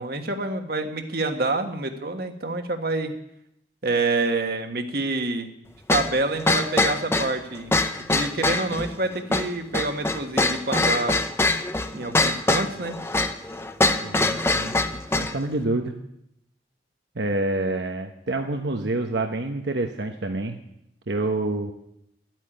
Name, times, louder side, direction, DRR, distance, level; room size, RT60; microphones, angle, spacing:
voice 1, 0.0-3.1 3.8-5.5 5.9-7.7 8.1-11.1 11.9-13.0, right 2 dB, 60° right, 6 dB, 1.5 m, -27 dB
sound 1, 5.9-15.4, left 2 dB, 15° left, 0.7 m, -23 dB
voice 2, 14.0-14.7 15.1-15.9 17.2-20.6 21.1-21.7, right 2 dB, 80° right, 4 dB, 1.0 m, -27 dB
13.0 x 9.1 x 9.1 m, 0.79 s
head